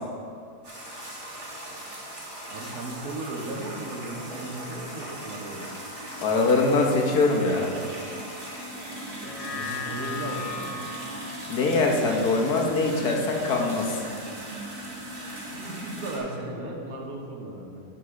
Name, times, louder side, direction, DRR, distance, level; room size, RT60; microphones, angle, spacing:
sound 1, 0.6-16.2, right 1 dB, 25° right, 1.6 m, -39 dB
voice 1, 2.5-5.7 9.5-10.8 15.6-17.8, right 2 dB, 65° right, 0 dB, 1.5 m, -36 dB
voice 2, 6.2-7.8 11.5-14.0, left 3 dB, 75° left, 0 dB, 1.5 m, -23 dB
sound 2, 9.1-13.7 14.1-14.2, left 4 dB, 40° left, 0.5 m, -38 dB
12.0 x 4.1 x 4.8 m, 2.4 s
omnidirectional pair, 1.7 m